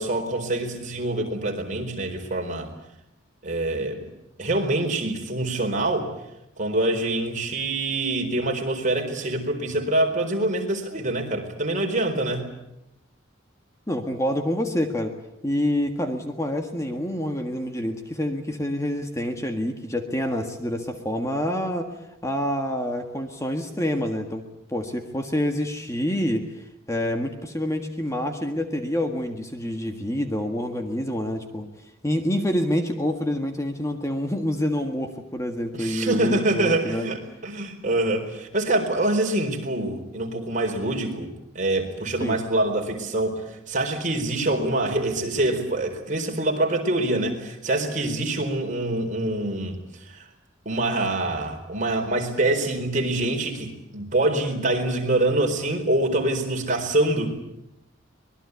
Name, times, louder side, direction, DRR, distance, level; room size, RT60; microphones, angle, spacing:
voice 1, 0.0-2.7 3.4-4.0 4.4-6.1 6.6-12.4 35.7-41.3 41.5-49.8 50.1-50.3 50.6-57.3, right 2 dB, 40° right, 2 dB, 4.4 m, -25 dB
voice 2, 13.9-15.1 15.4-21.9 22.2-24.4 24.7-31.7 32.0-37.1 42.2-42.4 48.1-48.3, left 1 dB, 15° left, 5 dB, 1.7 m, -27 dB
25.0 x 21.0 x 8.3 m, 0.85 s
head